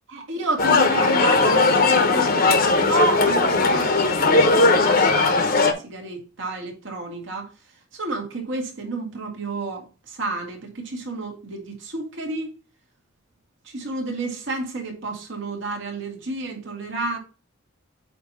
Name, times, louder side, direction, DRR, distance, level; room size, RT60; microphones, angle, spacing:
voice 1, 0.1-7.5 7.9-12.5 13.6-17.2, right 3 dB, 65° right, 2.2 m, -30 dB
sound 1, 0.6-5.7, left 3 dB, 45° left, 1.0 m, -18 dB
8.4 x 2.9 x 5.4 m
head